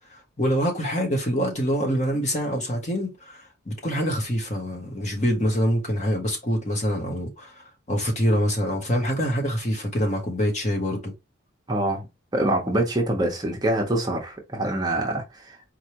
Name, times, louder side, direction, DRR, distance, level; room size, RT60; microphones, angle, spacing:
voice 1, 0.4-3.4 3.7-7.5 7.9-11.1, equal, 35° left, 1.4 m, -25 dB
voice 2, 11.7-12.1 12.3-15.7, right 1 dB, 20° right, 1.0 m, -25 dB
4.5 x 3.3 x 3.0 m
head